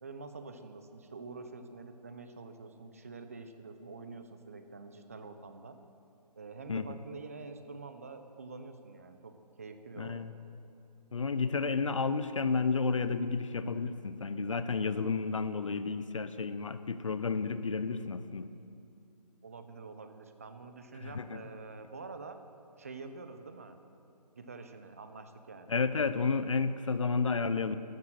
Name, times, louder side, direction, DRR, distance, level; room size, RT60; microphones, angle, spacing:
voice 1, 0.0-5.8 6.4-10.2 19.4-22.4 22.8-23.8 24.4-25.8, right 4 dB, 20° right, 8 dB, 0.6 m, -47 dB
voice 2, 10.0-10.3 11.1-18.5 21.0-21.4 25.7-27.8, left 4 dB, 50° left, 12 dB, 0.7 m, -31 dB
12.5 x 12.0 x 7.6 m, 2.5 s
hypercardioid pair, 170°, 21 cm